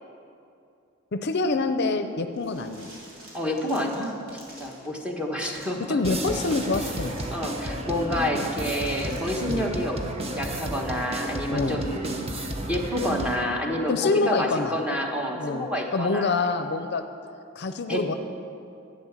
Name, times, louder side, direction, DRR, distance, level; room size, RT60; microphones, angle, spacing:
voice 1, 1.1-2.9 5.9-7.2 9.5-9.7 11.5-11.8 13.9-14.7 15.4-15.7 15.9-17.0 17.6-18.1, left 3 dB, 55° left, 9 dB, 0.6 m, -26 dB
sound 1, 2.3-4.9 5.5-7.8 8.4-8.5 8.7-9.5, right 1 dB, 85° right, 3.2 m, -47 dB
voice 2, 3.3-4.2 4.6-6.0 7.3-10.0 10.4-12.2 12.7-16.3 17.9-18.2, left 1 dB, 5° right, 0 dB, 1.4 m, -28 dB
sound 2, 6.0-13.4, right 1 dB, 30° right, 1.0 m, -32 dB
11.5 x 8.8 x 7.3 m, 2.6 s
head